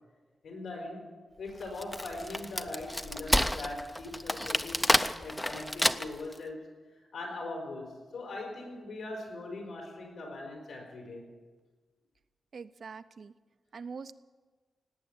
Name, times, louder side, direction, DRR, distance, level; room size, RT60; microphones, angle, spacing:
voice 1, 0.4-1.1 1.4-6.6 7.1-11.3, left 2 dB, 85° left, 1 dB, 5.3 m, -41 dB
Wood, 1.6-6.3, left 1 dB, 5° left, 0.5 m, -29 dB
voice 2, 12.5-13.3 13.7-14.1, right 5 dB, 55° right, 12 dB, 0.6 m, -43 dB
18.0 x 9.1 x 8.6 m, 1.3 s
wide cardioid pair, 135°, 0 cm